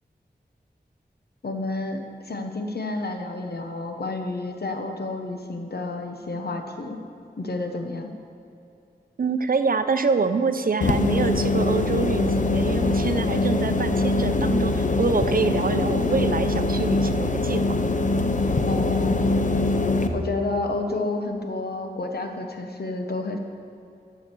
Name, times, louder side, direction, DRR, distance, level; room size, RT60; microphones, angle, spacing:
voice 1, 1.4-7.0 7.4-8.1 18.7-19.2 20.1-23.4, left 2 dB, 65° left, 4 dB, 1.0 m, -30 dB
voice 2, 9.2-17.6, right 4 dB, 55° right, 10 dB, 0.6 m, -26 dB
sound 1, 10.8-20.1, left 2 dB, 45° left, 0.6 m, -23 dB
12.0 x 5.0 x 6.9 m, 2.7 s
wide cardioid pair, 70°, 17 cm